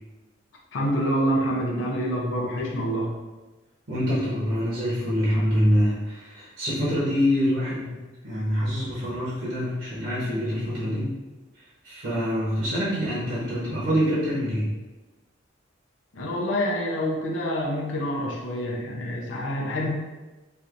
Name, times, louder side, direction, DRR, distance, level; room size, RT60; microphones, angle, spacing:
voice 1, 0.7-3.1 16.1-19.9, equal, 80° left, -2 dB, 0.6 m, -27 dB
voice 2, 3.9-8.0 8.2-11.1 11.8-14.7, equal, 70° right, -9 dB, 1.1 m, -25 dB
3.2 x 2.6 x 2.5 m, 1.2 s
head